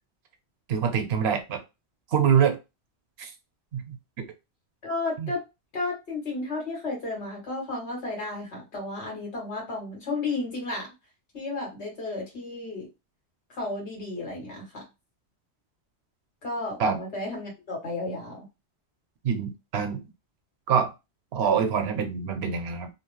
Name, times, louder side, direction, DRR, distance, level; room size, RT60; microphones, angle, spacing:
voice 1, 0.7-1.6 2.1-2.6 3.2-3.3 3.7-4.3 5.2-5.3 16.8-17.0 19.2-20.0 20.7-20.9 21.3-22.9, right 7 dB, 70° right, 7 dB, 0.8 m, -25 dB
voice 2, 4.8-5.4 5.7-10.9 11.3-12.9 13.5-14.8 16.4-18.4, left 2 dB, 75° left, -1 dB, 1.6 m, -33 dB
2.9 x 2.0 x 3.0 m, 0.25 s
omnidirectional pair, 1.1 m